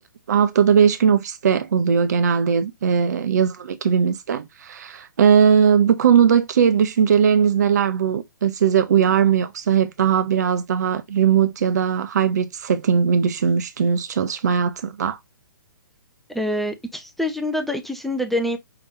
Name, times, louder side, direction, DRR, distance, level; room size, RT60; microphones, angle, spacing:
voice 1, 0.3-15.2, right 7 dB, 55° right, 0.5 m, -19 dB
voice 2, 16.3-18.6, left 1 dB, ahead, 0.5 m, -25 dB
5.7 x 3.4 x 2.6 m
figure-of-eight pair, 125°, 11 cm